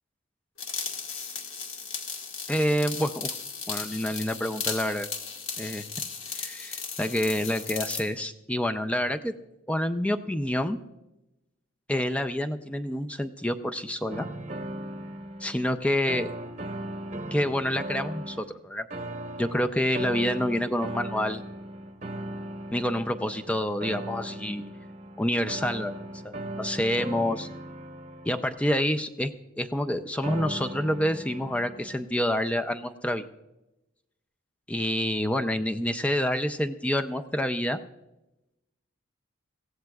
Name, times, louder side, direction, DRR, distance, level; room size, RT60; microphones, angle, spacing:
sound 1, 0.6-8.1, left 6 dB, 70° left, 1.6 m, -36 dB
voice 1, 2.5-3.3 3.7-5.1 5.6-5.8 6.3-9.3 9.7-10.8 11.9-14.3 15.4-16.3 17.3-18.8 19.4-21.4 22.7-24.7 25.2-25.9 26.2-27.5 28.2-33.2 34.7-37.8, left 1 dB, 5° left, 8 dB, 0.4 m, -28 dB
sound 2, 14.1-15.7 16.1-18.5 18.9-28.9 30.2-32.0, right 1 dB, 35° right, 0.8 m, -38 dB
22.5 x 16.0 x 2.4 m, 0.95 s
head